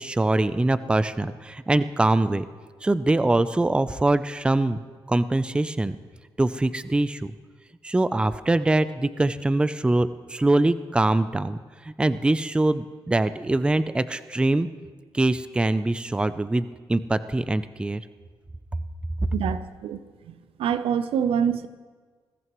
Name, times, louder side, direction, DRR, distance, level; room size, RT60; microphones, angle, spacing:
voice 1, 0.0-2.5 2.8-4.8 5.1-6.0 6.4-7.3 7.8-11.6 11.8-14.7 15.1-18.0, right 2 dB, 10° right, 13 dB, 0.5 m, -23 dB
voice 2, 19.3-20.0 20.3-20.4 20.6-21.7, right 8 dB, 85° right, 12 dB, 0.6 m, -25 dB
21.0 x 14.0 x 3.1 m, 1.5 s
cardioid pair, 105°, 9 cm